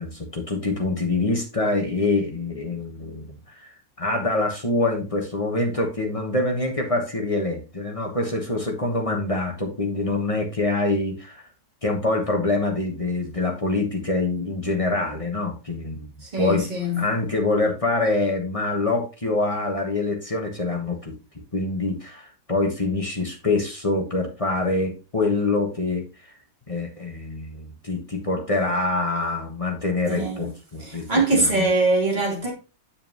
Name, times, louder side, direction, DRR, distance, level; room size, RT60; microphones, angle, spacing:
voice 1, 0.0-11.4 11.8-16.7 17.0-21.2 21.5-26.3 26.7-31.7, left 2 dB, 20° left, 1.1 m, -25 dB
voice 2, 16.2-17.0 30.0-30.5 30.8-32.5, right 2 dB, 25° right, 2.7 m, -23 dB
7.4 x 7.2 x 3.0 m
omnidirectional pair, 1.9 m